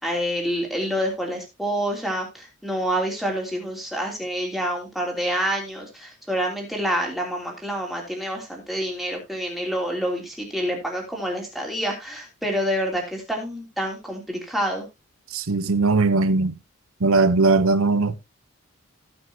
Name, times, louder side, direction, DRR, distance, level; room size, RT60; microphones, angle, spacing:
voice 1, 0.0-14.9, equal, ahead, 3.0 m, -27 dB
voice 2, 15.3-16.5 17.0-18.2, right 3 dB, 75° right, 0.8 m, -19 dB
18.0 x 6.0 x 2.8 m
head